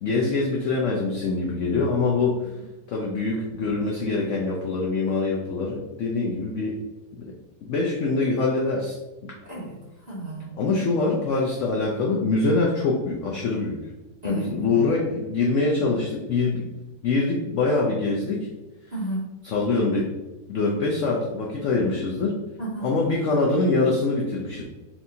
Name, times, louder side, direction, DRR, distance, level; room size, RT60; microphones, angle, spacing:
voice 1, 0.0-2.5 2.9-6.7 7.1-7.2 7.6-9.0 9.2-9.3 10.6-13.8 14.2-16.7 17.0-18.5 19.4-20.1 20.5-22.4 22.8-24.6, left 3 dB, 75° left, -2 dB, 0.7 m, -24 dB
voice 2, 9.4-9.8 10.0-10.5 14.2-14.8 18.9-19.2 22.6-22.9, right 2 dB, 25° right, -7 dB, 1.1 m, -32 dB
4.3 x 3.5 x 2.7 m, 1.1 s
omnidirectional pair, 2.0 m